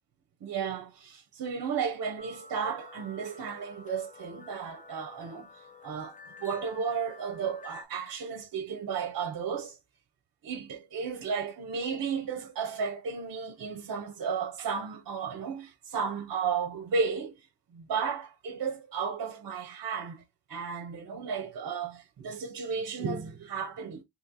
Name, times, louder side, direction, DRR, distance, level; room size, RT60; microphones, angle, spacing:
voice 1, 0.4-5.5 5.8-6.1 6.4-9.8 10.4-17.4 17.7-20.2 20.5-24.0, right 6 dB, 60° right, 0.6 m, -33 dB
sound 1, 2.2-7.9, left 4 dB, 20° left, 0.4 m, -49 dB
2.8 x 2.8 x 3.7 m
wide cardioid pair, 160°, 40 cm